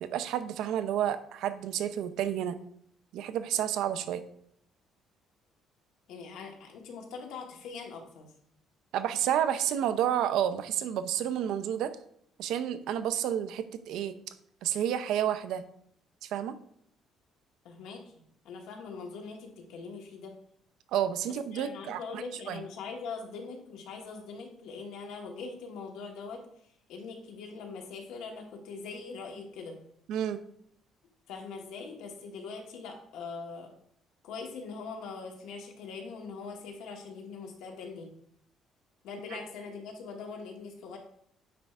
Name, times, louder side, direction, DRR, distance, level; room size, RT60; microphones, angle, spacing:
voice 1, 0.0-2.6 3.1-4.2 8.9-11.9 12.4-14.2 14.6-15.6 16.2-16.6 20.9-22.6 30.1-30.4, right 10 dB, 70° right, 11 dB, 0.5 m, -30 dB
voice 2, 6.1-8.3 17.6-18.0 18.4-20.3 21.3-26.4 26.9-29.8 31.3-33.7 34.2-38.1 39.0-41.0, left 4 dB, 85° left, 2 dB, 1.3 m, -42 dB
9.3 x 4.4 x 2.4 m, 0.69 s
cardioid pair, 180°, 0 cm